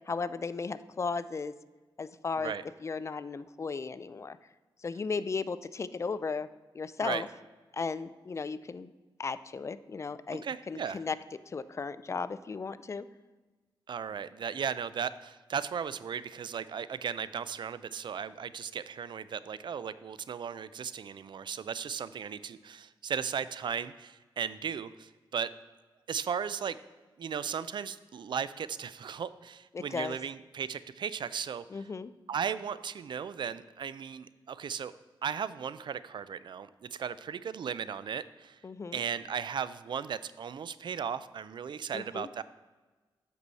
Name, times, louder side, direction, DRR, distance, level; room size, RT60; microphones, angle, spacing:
voice 1, 0.1-1.5 2.0-2.5 2.8-4.4 4.8-6.5 6.7-7.3 7.7-8.9 9.2-13.1 29.7-30.2 31.7-32.1 38.6-39.0 41.9-42.3, left 4 dB, 35° left, 15 dB, 0.4 m, -35 dB
voice 2, 10.4-11.0 13.9-25.5 26.1-26.8 27.2-31.6 32.3-34.9 35.2-38.6 38.9-42.4, right 7 dB, 60° right, 15 dB, 0.4 m, -36 dB
8.3 x 6.2 x 4.1 m, 1.3 s
cardioid pair, 85°, 9 cm